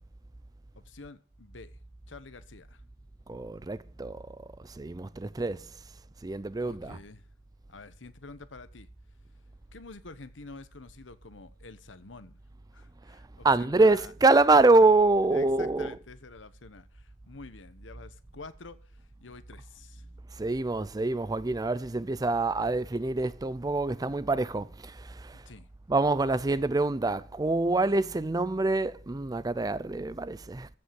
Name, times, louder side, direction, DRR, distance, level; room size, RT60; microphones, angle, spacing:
voice 1, 0.8-1.8 2.1-2.8 6.6-7.3 7.7-8.9 9.7-12.4 12.7-14.1 15.3-20.1 25.4-25.7, left 3 dB, 90° left, 1.1 m, -48 dB
voice 2, 3.3-5.7 6.2-7.0 13.1-13.2 13.4-16.0 20.3-25.4 25.9-30.7, right 3 dB, 20° right, 0.5 m, -25 dB
14.5 x 5.6 x 7.5 m
head